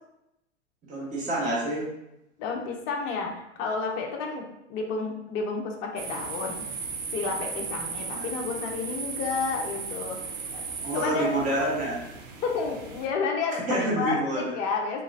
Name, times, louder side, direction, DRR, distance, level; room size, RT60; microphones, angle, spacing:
voice 1, 0.9-1.8 8.1-8.3 10.8-12.0 13.7-14.5, right 1 dB, 20° right, -5 dB, 0.9 m, -27 dB
voice 2, 2.4-3.3 3.6-6.6 7.1-10.2 10.5-10.6 10.9-11.3 12.4-13.6 14.0-15.0, left 4 dB, 25° left, 1 dB, 0.4 m, -30 dB
sound 1, 6.0-13.1, right 5 dB, 50° right, 0.6 m, -36 dB
3.1 x 2.9 x 2.4 m, 0.85 s
figure-of-eight pair, 95°, 35 cm